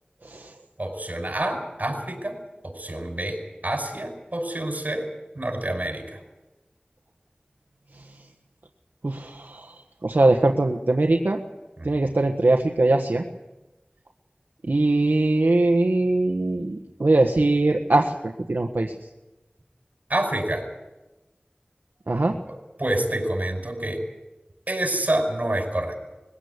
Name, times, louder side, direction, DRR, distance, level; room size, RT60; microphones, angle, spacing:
voice 1, 0.2-0.5 7.9-8.1 9.0-11.4 11.8-13.2 14.7-18.9 22.1-22.4, right 2 dB, 80° right, 3 dB, 1.4 m, -21 dB
voice 2, 0.8-2.4 2.6-5.1 5.4-6.2 11.8-12.0 20.1-20.7 22.5-22.6 22.8-24.0 24.7-25.9, right 1 dB, 55° right, 5 dB, 5.3 m, -27 dB
21.5 x 16.0 x 9.7 m, 1.0 s
wide cardioid pair, 50°, 3 cm